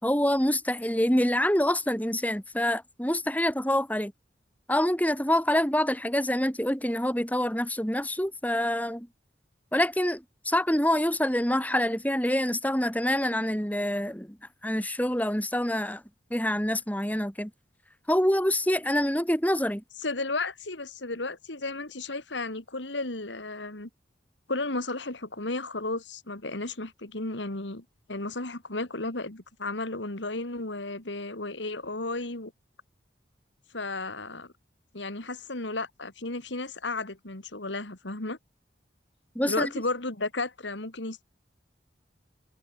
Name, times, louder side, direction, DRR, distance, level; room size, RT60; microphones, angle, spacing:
voice 1, 0.0-4.1 4.7-9.1 9.7-14.4 14.6-16.0 16.3-17.5 18.1-19.8 39.3-39.7, left 1 dB, 10° left, 4.6 m, -26 dB
voice 2, 20.0-23.9 24.5-32.5 33.7-34.5 34.9-38.4 39.4-41.2, left 2 dB, 85° left, 3.0 m, -33 dB
head